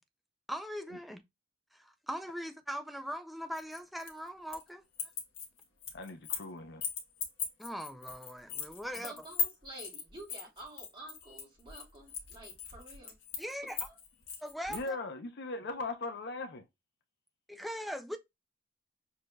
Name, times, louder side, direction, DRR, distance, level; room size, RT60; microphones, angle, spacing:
voice 1, 0.5-1.2 1.7-4.8 7.6-9.1 13.4-13.8 14.4-15.0 17.5-18.2, equal, ahead, 0.3 m, -40 dB
sound 1, 3.5-4.7 4.9-6.5 6.8-14.9, left 6 dB, 90° left, 1.2 m, -39 dB
voice 2, 5.9-6.8 14.7-16.6, left 3 dB, 60° left, 0.6 m, -39 dB
voice 3, 8.9-13.2 13.9-14.0, right 2 dB, 25° right, 1.9 m, -50 dB
6.3 x 2.6 x 2.2 m
head